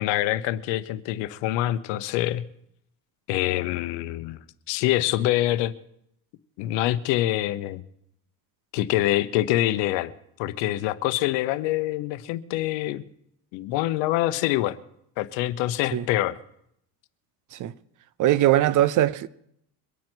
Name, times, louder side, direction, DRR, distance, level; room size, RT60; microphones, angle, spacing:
voice 1, 0.0-2.4 3.3-4.4 4.7-5.7 6.6-7.8 8.7-10.1 10.4-13.0 13.5-14.8 15.2-16.4, left 15 dB, 75° left, 0.9 m, -25 dB
voice 2, 18.2-19.3, right 13 dB, 45° right, 0.7 m, -21 dB
23.5 x 9.2 x 4.5 m
cardioid pair, 115°, 44 cm